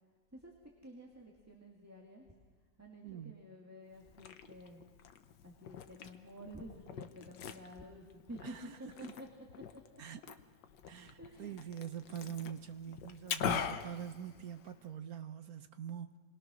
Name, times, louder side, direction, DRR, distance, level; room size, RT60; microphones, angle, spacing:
voice 1, 0.8-2.3 2.8-4.8 5.4-9.3 9.6-10.2 11.2-11.7, equal, 10° right, -1 dB, 2.1 m, -51 dB
voice 2, 3.0-3.4 8.4-9.2 10.0-10.4 10.9-16.2, right 8 dB, 60° right, 9 dB, 1.3 m, -44 dB
Liquid, 3.9-14.9, left 8 dB, 70° left, 1.6 m, -44 dB
28.0 x 21.5 x 6.3 m, 1.5 s
omnidirectional pair, 2.0 m